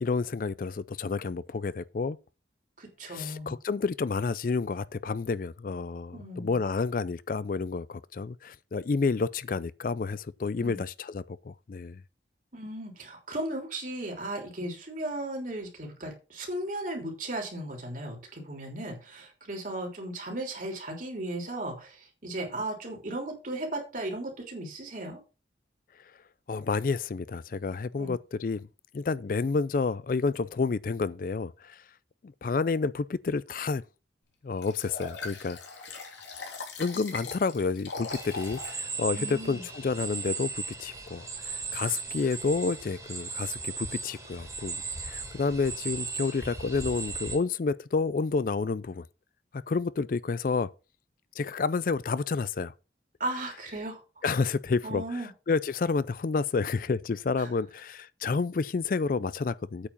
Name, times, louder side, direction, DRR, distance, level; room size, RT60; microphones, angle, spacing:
voice 1, 0.0-2.2 3.1-12.0 26.5-28.7 28.9-31.8 32.4-33.8 34.4-35.6 36.8-44.8 45.0-49.1 49.5-50.7 51.4-52.7 54.2-59.9, left 4 dB, 45° left, 0.4 m, -30 dB
voice 2, 2.8-3.6 6.1-6.6 10.6-10.8 12.5-25.2 28.0-28.1 39.1-39.6 53.2-54.0 54.8-55.3 57.4-57.5, right 1 dB, 45° right, 3.2 m, -36 dB
Liquid, 34.6-38.8 39.3-39.4, left 4 dB, 80° left, 3.3 m, -40 dB
sound 1, 38.1-47.4, right 4 dB, 15° right, 2.3 m, -37 dB
8.7 x 4.8 x 6.9 m
head